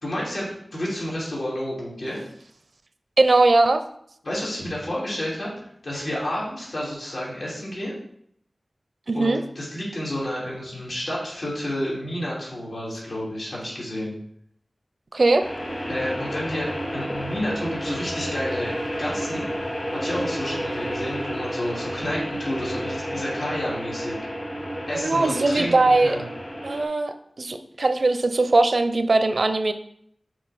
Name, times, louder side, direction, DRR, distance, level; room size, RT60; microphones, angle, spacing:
voice 1, 0.0-2.2 4.2-5.5 5.8-7.9 9.1-14.1 15.9-19.5 19.9-24.1 24.9-26.3, left 1 dB, 70° left, -6 dB, 3.1 m, -30 dB
voice 2, 3.2-3.8 9.1-9.4 15.1-15.4 24.9-26.2 26.6-29.7, right 2 dB, 65° right, 9 dB, 0.6 m, -20 dB
sound 1, 15.4-26.8, equal, 40° left, 2.0 m, -31 dB
6.2 x 4.9 x 5.1 m, 0.69 s
wide cardioid pair, 60°, 0 cm